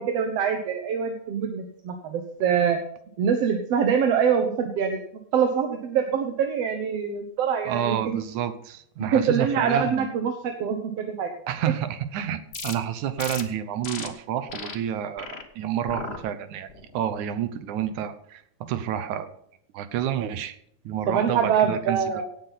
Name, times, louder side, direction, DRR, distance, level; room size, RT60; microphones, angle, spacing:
voice 1, 0.0-2.8 3.2-5.0 5.3-8.2 9.1-11.3 21.1-22.3, right 7 dB, 65° right, 5 dB, 2.1 m, -24 dB
voice 2, 7.7-10.1 11.5-15.3 15.6-19.3 19.7-20.6 20.9-22.0, right 10 dB, 85° right, 11 dB, 2.5 m, -29 dB
sound 1, 12.5-12.7 13.2-13.4 13.8-14.1 14.5-14.7 15.2-15.4 15.9-16.2 16.7-17.0, left 4 dB, 50° left, 0.7 m, -36 dB
17.5 x 8.4 x 4.1 m, 0.70 s
omnidirectional pair, 3.4 m